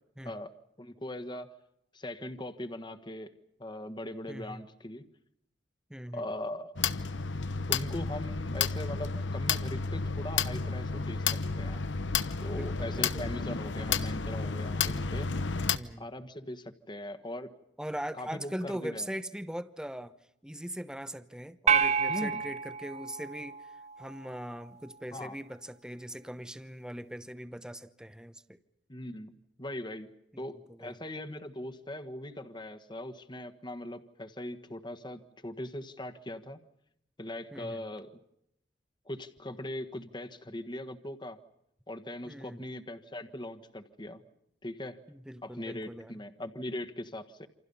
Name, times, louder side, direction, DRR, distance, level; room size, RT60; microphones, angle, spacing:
voice 1, 0.8-1.5 1.9-3.3 3.6-5.0 6.1-6.7 7.7-11.8 12.4-15.3 16.0-17.5 18.2-19.1 22.1-22.4 25.1-25.3 28.9-30.1 30.4-36.6 37.2-38.1 39.0-41.4 41.9-44.2 44.6-45.0 45.4-47.5, left 1 dB, 25° left, 8 dB, 1.5 m, -40 dB
voice 2, 4.3-4.6 5.9-6.2 12.6-13.4 13.9-14.0 15.7-16.1 17.8-20.2 20.4-23.7 24.0-28.6 30.3-30.4 30.7-31.0 37.5-37.8 42.2-42.6 45.1-46.1, equal, 5° right, 12 dB, 0.9 m, -41 dB
sound 1, 6.8-15.8, left 5 dB, 80° left, 1.0 m, -31 dB
sound 2, 21.7-24.2, right 6 dB, 40° right, 0.9 m, -29 dB
28.5 x 27.0 x 5.6 m, 0.78 s
head